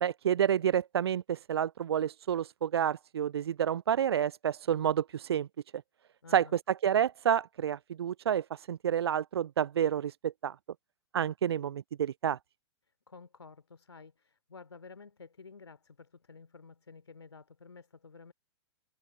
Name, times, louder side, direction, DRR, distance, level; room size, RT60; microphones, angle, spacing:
voice 1, 0.0-5.5 6.3-6.4 6.8-10.6 11.1-12.4, right 9 dB, 65° right, 0.4 m, -29 dB
voice 2, 6.2-6.5 13.1-18.3, left 4 dB, 75° left, 2.9 m, -52 dB
figure-of-eight pair, 105°, 14 cm